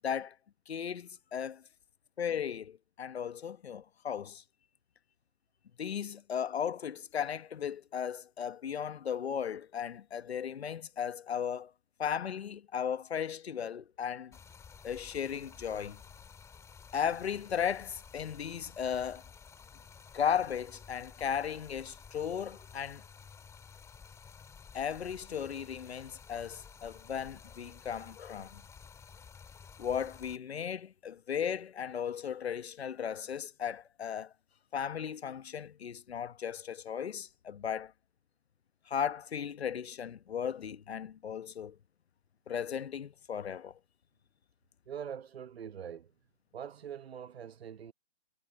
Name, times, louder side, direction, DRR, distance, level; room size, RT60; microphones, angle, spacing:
voice 1, 0.0-0.4 0.7-1.6 2.2-4.4 5.8-11.7 12.0-14.4 14.8-16.0 16.9-19.2 20.1-23.0 24.7-28.6 29.8-34.3 34.7-37.9 38.9-41.8 42.5-43.7, left 8 dB, 75° left, 1.2 m, -36 dB
Stream, 14.3-30.4, left 6 dB, 10° left, 2.1 m, -53 dB
voice 2, 44.9-46.1 46.5-47.9, right 8 dB, 70° right, 1.1 m, -43 dB
hypercardioid pair, 140°, 32 cm